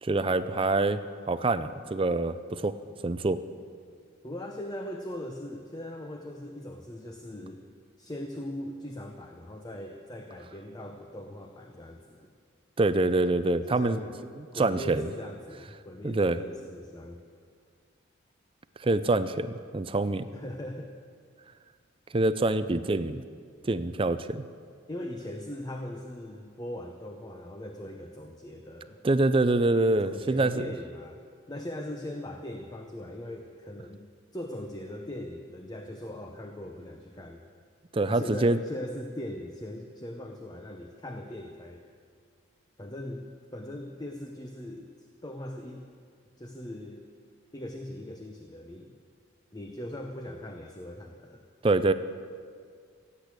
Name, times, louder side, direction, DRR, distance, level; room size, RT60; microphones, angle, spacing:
voice 1, 0.0-1.0 1.3-2.7 3.0-3.4 12.8-14.0 14.6-15.0 16.0-16.4 18.8-20.3 22.1-23.2 23.7-24.4 29.0-30.7 37.9-38.6 51.6-51.9, right 2 dB, 25° right, 13 dB, 0.4 m, -25 dB
voice 2, 4.2-7.6 8.0-12.3 13.7-14.1 14.5-17.2 20.3-20.9 24.9-29.0 30.0-31.2 31.5-34.0 34.3-37.4 38.1-41.8 42.8-45.9 46.4-47.1 47.5-49.0 49.5-51.4, left 1 dB, 20° left, 4 dB, 0.7 m, -40 dB
16.5 x 8.4 x 8.1 m, 2.1 s
head